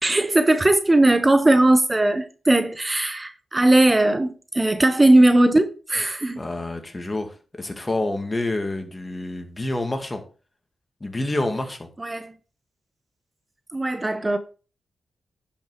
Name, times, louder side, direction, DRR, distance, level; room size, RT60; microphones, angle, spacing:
voice 1, 0.0-4.3 4.5-6.4 12.0-12.3 13.7-14.4, right 1 dB, 25° right, 0.9 m, -18 dB
voice 2, 6.4-10.2 11.0-11.9, left 2 dB, 30° left, 2.3 m, -28 dB
10.5 x 6.0 x 4.8 m
cardioid pair, 55°, 0 cm